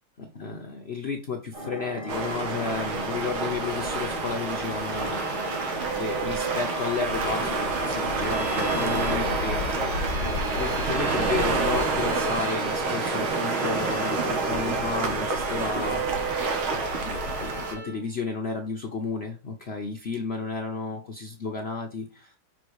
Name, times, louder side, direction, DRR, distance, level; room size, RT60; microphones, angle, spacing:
voice 1, 0.2-5.2 5.9-9.9 10.2-16.0 17.0-22.3, left 4 dB, 65° left, 3 dB, 0.6 m, -33 dB
sound 1, 1.5-17.8, left 1 dB, 15° right, 2.1 m, -39 dB
sound 2, 2.1-17.7, right 3 dB, 75° right, 2.2 m, -28 dB
Bowed string instrument, 4.9-18.0, right 4 dB, 35° right, 2.9 m, -38 dB
6.6 x 4.3 x 4.8 m, 0.33 s
omnidirectional pair, 2.3 m